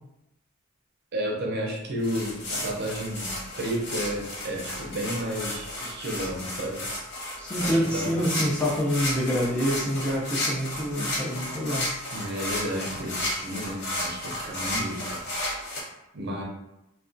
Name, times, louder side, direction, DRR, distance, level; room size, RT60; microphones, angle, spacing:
voice 1, 1.1-6.9 7.6-8.4 12.1-15.2 16.1-16.4, equal, 55° right, -1 dB, 0.5 m, -32 dB
sound 1, 2.0-15.8, left 1 dB, 55° left, 0.9 m, -33 dB
voice 2, 7.4-11.9, equal, 5° left, -5 dB, 0.4 m, -26 dB
2.3 x 2.1 x 2.5 m, 0.88 s
head